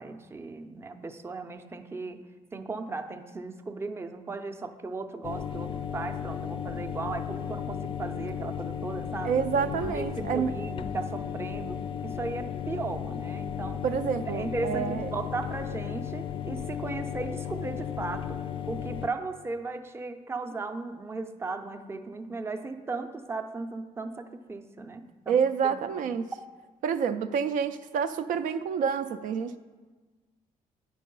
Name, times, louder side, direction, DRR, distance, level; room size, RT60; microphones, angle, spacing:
voice 1, 0.0-2.2 2.5-9.3 9.8-13.9 14.3-18.4 18.7-25.4 25.6-26.0, right 3 dB, 20° right, 7 dB, 0.5 m, -36 dB
sound 1, 5.2-19.1, left 8 dB, 40° left, 0.4 m, -35 dB
voice 2, 9.2-10.5 13.8-15.1 25.3-26.3 26.8-29.6, right 7 dB, 75° right, 9 dB, 0.4 m, -28 dB
9.2 x 4.6 x 5.3 m, 1.3 s
cardioid pair, 110°, 14 cm